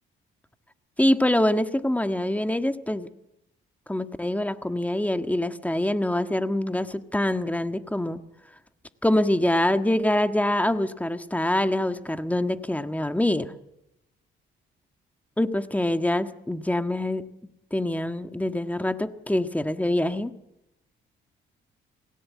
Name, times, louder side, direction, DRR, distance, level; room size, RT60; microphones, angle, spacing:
voice 1, 1.0-3.1 3.9-8.2 9.0-13.5 15.4-17.3 17.7-20.3, left 1 dB, 5° left, 9 dB, 1.6 m, -25 dB
28.5 x 18.5 x 8.6 m, 0.88 s
cardioid pair, 90°, 20 cm